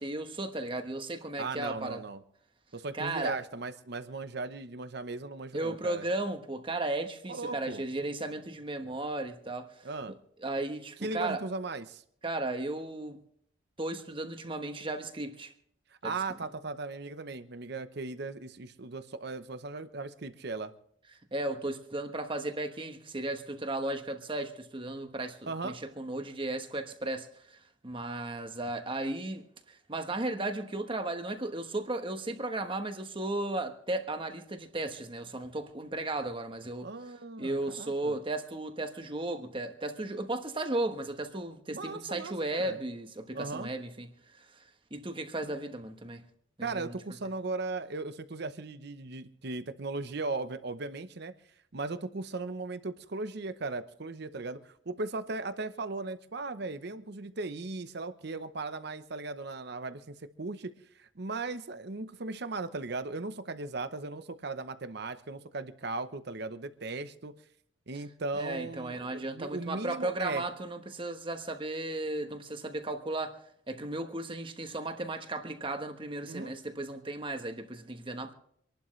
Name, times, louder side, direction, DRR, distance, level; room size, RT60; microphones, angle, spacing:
voice 1, 0.0-2.0 2.9-3.4 5.5-9.8 10.4-11.4 12.2-13.2 13.8-15.5 16.0-16.1 21.3-27.6 27.8-36.9 37.4-44.1 44.3-44.4 44.9-46.2 46.6-46.9 68.3-73.4 73.7-78.3, right 2 dB, 25° right, 1.2 m, -35 dB
voice 2, 1.4-2.2 2.7-6.1 7.3-7.8 9.8-10.1 11.0-12.0 16.0-20.7 25.5-25.8 36.8-38.2 41.7-42.8 43.3-43.7 45.4-45.5 46.6-51.3 51.7-67.3 67.9-70.4 76.2-76.5, right 3 dB, 60° right, 0.8 m, -37 dB
26.0 x 11.5 x 3.2 m
head